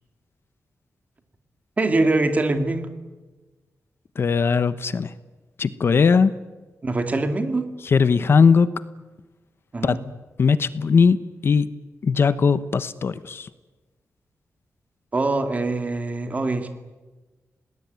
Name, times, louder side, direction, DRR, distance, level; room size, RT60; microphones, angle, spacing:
voice 1, 1.8-2.9 6.8-7.7 9.7-10.0 15.1-16.7, right 2 dB, 30° right, 7 dB, 2.4 m, -23 dB
voice 2, 4.2-5.1 5.6-6.3 7.8-8.7 9.8-10.0 10.4-11.7 12.0-13.5, left 5 dB, 50° left, 14 dB, 0.9 m, -19 dB
28.0 x 19.0 x 9.4 m, 1.2 s
wide cardioid pair, 165°, 5 cm